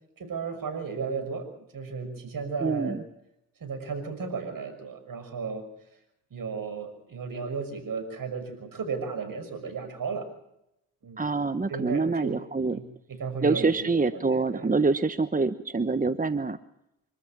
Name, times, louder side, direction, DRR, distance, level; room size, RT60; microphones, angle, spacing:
voice 1, 0.2-3.0 3.6-5.6 6.3-10.2 11.0-11.2 11.7-12.4 12.7-14.7, right 5 dB, 55° right, 9 dB, 6.1 m, -34 dB
voice 2, 2.6-3.0 11.2-12.8 13.4-16.6, right 3 dB, 20° right, 12 dB, 1.1 m, -26 dB
25.5 x 14.0 x 8.9 m, 0.82 s
hypercardioid pair, 45°, 40 cm